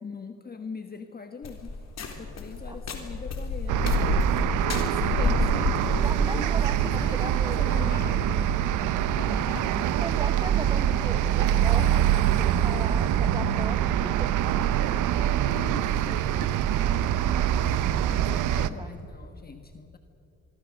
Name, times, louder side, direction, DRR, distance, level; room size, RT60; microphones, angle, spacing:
voice 1, 0.0-4.0 4.6-8.3 9.0-10.0 15.4-17.0 17.5-20.0, left 4 dB, 30° left, 7 dB, 1.3 m, -41 dB
sound 1, 1.4-9.7, left 3 dB, 60° left, 3.7 m, -30 dB
sound 2, 3.7-18.7, right 10 dB, 85° right, 0.9 m, -24 dB
voice 2, 5.9-8.0 9.5-12.1 12.4-14.3 17.2-18.3 18.8-18.9, right 2 dB, 15° right, 6 dB, 1.3 m, -38 dB
24.5 x 23.5 x 6.5 m, 2.9 s
cardioid pair, 90°, 30 cm